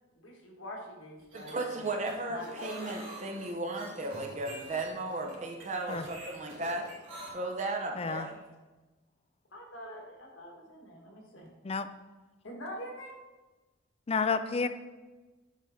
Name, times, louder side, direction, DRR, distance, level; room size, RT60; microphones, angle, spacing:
voice 1, 0.1-1.9 2.2-2.9 3.4-3.5 7.5-7.7 8.0-8.3 9.5-11.5 12.4-13.1, equal, 75° left, -1 dB, 1.6 m, -45 dB
sound 1, 1.2-7.3, right 1 dB, 80° right, 2.4 m, -46 dB
voice 2, 1.3-6.9 7.3-8.3, right 2 dB, 35° right, 2 dB, 0.7 m, -35 dB
voice 3, 8.0-8.3 11.6-11.9 14.1-14.7, left 5 dB, 30° left, 11 dB, 0.3 m, -30 dB
7.4 x 5.5 x 3.6 m, 1.2 s
head